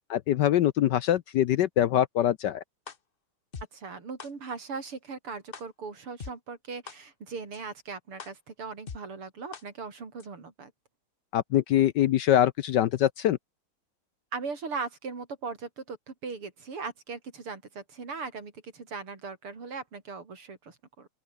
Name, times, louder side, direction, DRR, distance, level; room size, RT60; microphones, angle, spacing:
voice 1, 0.1-2.6 11.3-13.4, left 11 dB, 70° left, 1.1 m, -23 dB
sound 1, 2.9-3.0 3.5-3.6 4.2-4.3 4.9-5.0 5.5-5.6 6.2-6.3 6.9-7.0 7.5-7.6 8.2-8.3 8.9-9.0 9.5-9.6 10.2-10.3, left 6 dB, 35° left, 0.9 m, -40 dB
voice 2, 3.7-10.7 14.3-21.1, right 4 dB, 85° right, 4.7 m, -39 dB
open air
omnidirectional pair, 2.4 m